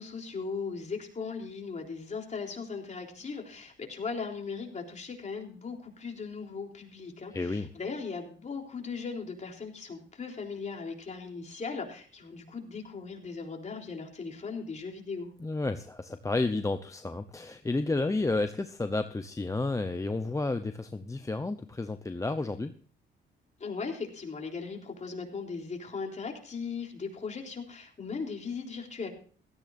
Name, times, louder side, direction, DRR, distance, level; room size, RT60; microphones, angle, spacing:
voice 1, 0.0-15.3 23.6-29.1, left 5 dB, 35° left, 1 dB, 3.7 m, -38 dB
voice 2, 7.3-7.7 15.4-22.7, left 3 dB, 15° left, 9 dB, 0.8 m, -31 dB
16.5 x 14.0 x 2.6 m, 0.43 s
cardioid pair, 90°, 20 cm